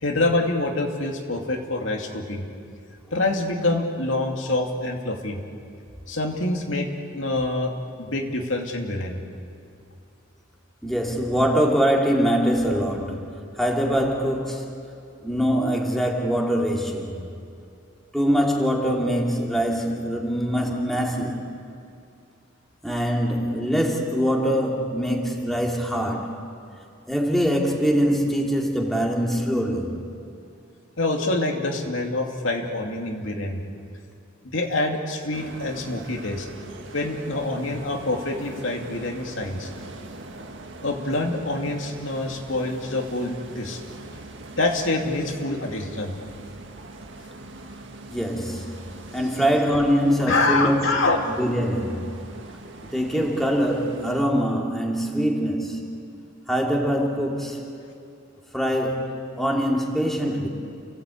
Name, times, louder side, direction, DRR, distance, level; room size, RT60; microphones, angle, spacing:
voice 1, 0.0-2.4 3.1-5.4 6.1-6.9 7.1-7.7 8.0-9.2 31.0-33.6 34.5-36.5 36.9-39.7 40.8-43.8 44.5-46.1 50.3-51.3, left 2 dB, 70° left, 2 dB, 2.6 m, -26 dB
voice 2, 10.8-14.6 15.2-17.2 18.1-21.5 22.8-26.4 27.1-30.0 48.1-48.8 49.1-50.9 51.3-52.2 52.8-56.0 56.5-57.6 58.5-60.5, equal, ahead, -1 dB, 2.8 m, -23 dB
sound 1, 35.3-54.2, right 2 dB, 60° right, 2.0 m, -42 dB
29.5 x 17.5 x 8.6 m, 2.5 s
head